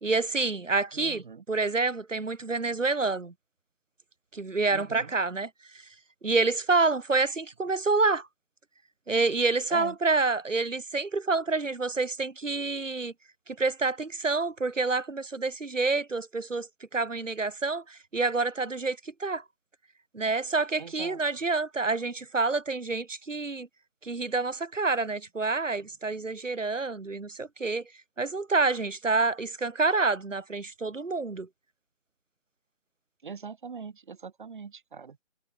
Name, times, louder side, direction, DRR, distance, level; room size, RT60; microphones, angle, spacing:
voice 1, 0.0-3.3 4.3-5.5 6.2-8.3 9.1-13.1 13.5-16.7 16.9-19.4 20.1-23.7 24.0-27.8 28.2-31.5, right 3 dB, 80° right, 1.8 m, -28 dB
voice 2, 0.9-1.4 4.7-5.1 9.7-10.0 20.8-21.2 33.2-35.2, right 5 dB, 40° right, 4.3 m, -42 dB
figure-of-eight pair, 155°, 37 cm